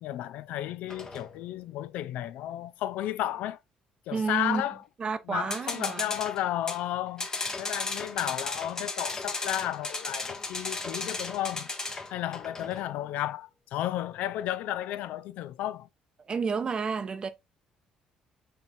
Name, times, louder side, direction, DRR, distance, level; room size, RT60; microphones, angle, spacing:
voice 1, 0.0-3.6 4.1-4.8 5.3-7.3 7.6-11.7 12.1-15.9, left 13 dB, 75° left, 0.3 m, -33 dB
sound 1, 0.9-1.4 5.5-6.8 7.2-12.9, left 3 dB, 25° left, 0.8 m, -35 dB
voice 2, 4.1-4.6 5.0-6.1 16.2-17.3, right 5 dB, 35° right, 0.6 m, -30 dB
5.6 x 3.2 x 2.6 m
cardioid pair, 90°, 3 cm